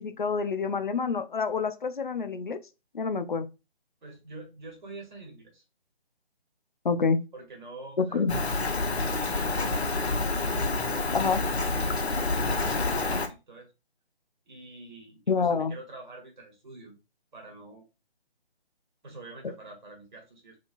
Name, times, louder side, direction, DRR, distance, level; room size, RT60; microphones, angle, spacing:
voice 1, 0.0-2.6 2.9-3.5 6.8-7.2 8.0-8.3 11.1-11.4 15.3-15.7 19.4-19.5, left 5 dB, 50° left, 0.4 m, -27 dB
voice 2, 4.0-5.6 7.3-8.3 8.7-10.1 10.9-13.7 14.5-17.0 17.3-17.8 19.0-20.6, right 2 dB, 45° right, 1.2 m, -46 dB
Rain, 8.3-13.3, left 3 dB, 85° left, 0.7 m, -28 dB
3.0 x 2.7 x 2.6 m
figure-of-eight pair, 150°, 31 cm